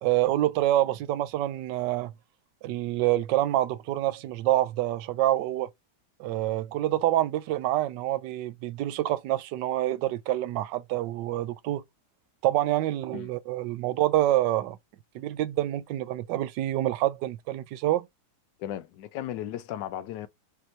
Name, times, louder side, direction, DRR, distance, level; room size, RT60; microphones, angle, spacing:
voice 1, 0.0-2.1 2.6-5.7 6.2-11.8 12.4-14.8 15.1-18.1, right 14 dB, 85° right, 1.2 m, -27 dB
voice 2, 18.6-20.3, left 11 dB, 85° left, 1.3 m, -35 dB
5.3 x 3.0 x 3.3 m
omnidirectional pair, 1.8 m